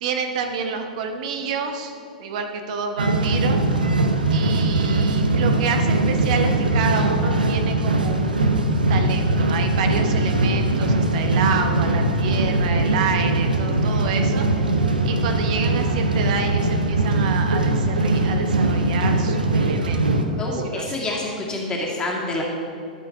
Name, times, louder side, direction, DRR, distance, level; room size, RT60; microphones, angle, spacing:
voice 1, 0.0-3.6 4.3-8.6 8.9-14.5 15.0-20.1 20.4-21.0, right 5 dB, 55° right, 5 dB, 0.9 m, -29 dB
sound 1, 3.0-20.2, right 2 dB, 90° right, 0.9 m, -21 dB
voice 2, 20.4-22.4, left 2 dB, 20° left, -2 dB, 2.2 m, -27 dB
12.5 x 5.6 x 4.6 m, 2.5 s
hypercardioid pair, 110°, 5 cm